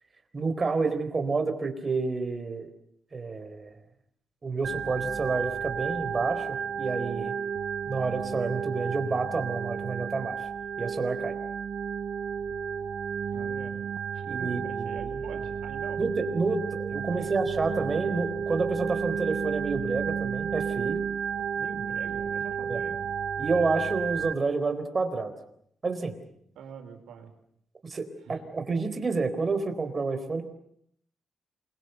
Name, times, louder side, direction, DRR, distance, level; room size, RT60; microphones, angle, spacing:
voice 1, 0.3-2.7 3.1-3.8 4.4-7.3 7.9-10.5 10.8-11.3 14.2-14.9 16.0-21.0 22.7-22.8 23.4-25.3 25.8-26.2 27.8-30.4, right 4 dB, 30° right, 8 dB, 4.0 m, -29 dB
Organ, 4.6-24.3, right 7 dB, 60° right, 1.4 m, -32 dB
voice 2, 13.3-13.8 14.1-16.0 17.1-17.4 21.5-23.0 26.5-27.3 28.2-28.4, right 6 dB, 85° right, 6 dB, 4.7 m, -44 dB
28.0 x 22.5 x 8.1 m, 0.69 s
cardioid pair, 115°, 0 cm